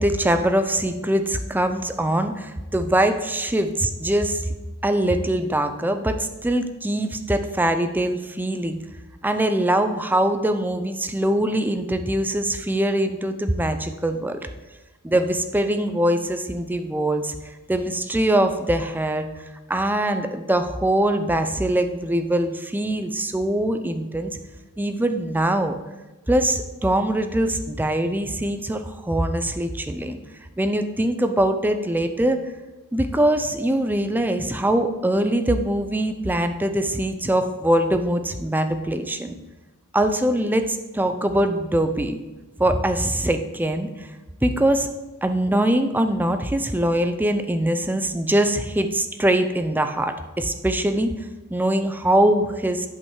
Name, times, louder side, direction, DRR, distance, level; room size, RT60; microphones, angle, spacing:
voice 1, 0.0-4.4 4.8-8.8 9.2-14.4 15.0-17.4 17.7-19.3 19.7-24.3 24.8-25.7 26.3-30.2 30.6-32.4 32.9-39.3 39.9-42.2 42.6-43.9 44.4-44.9 45.2-51.1 51.5-52.9, right 1 dB, 10° right, 8 dB, 0.5 m, -22 dB
8.5 x 5.5 x 4.7 m, 1.1 s
head